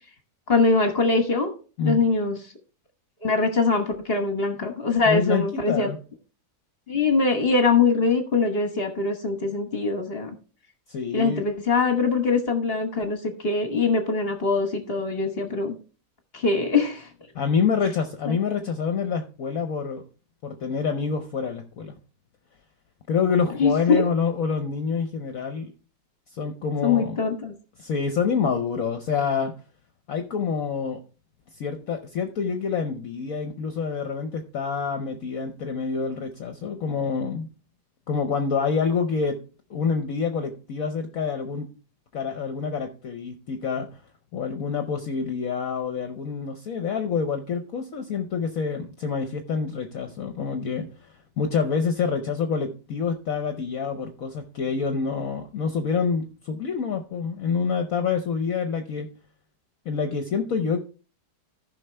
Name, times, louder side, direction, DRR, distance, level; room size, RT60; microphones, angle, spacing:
voice 1, 0.5-1.5 1.9-2.4 3.2-5.9 6.9-10.4 11.1-15.8 16.3-17.1 18.3-18.4 23.6-24.0 26.8-27.5, left 4 dB, 40° left, 5 dB, 1.3 m, -23 dB
voice 2, 5.1-6.0 10.9-11.4 17.3-20.0 20.4-21.9 23.1-25.7 26.3-27.2 27.8-29.5 30.1-31.0 31.5-37.5 38.1-39.4 39.7-41.7 42.1-44.0 44.3-59.1 59.8-60.8, left 5 dB, 60° left, 6 dB, 1.1 m, -27 dB
14.5 x 5.6 x 3.3 m, 0.35 s
omnidirectional pair, 1.8 m